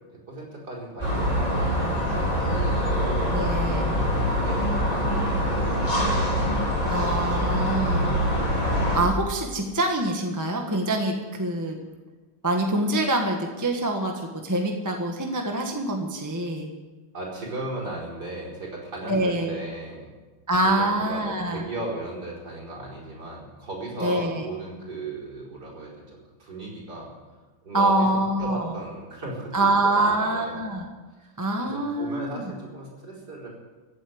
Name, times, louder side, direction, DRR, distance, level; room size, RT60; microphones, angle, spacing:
voice 1, 0.3-3.3 3.8-8.1 17.1-20.1 20.6-26.0 26.4-27.1 27.6-30.7 31.7-33.5, right 2 dB, 45° right, -4 dB, 5.1 m, -37 dB
sound 1, 1.0-9.0, equal, 15° left, 4.4 m, -24 dB
voice 2, 3.3-3.9 6.9-8.2 8.9-11.8 12.4-16.7 19.1-19.5 20.5-21.6 24.0-24.5 27.7-28.6 29.5-30.9 31.4-32.4, right 1 dB, 10° right, 2 dB, 1.2 m, -25 dB
16.0 x 8.5 x 9.4 m, 1.2 s
omnidirectional pair, 2.4 m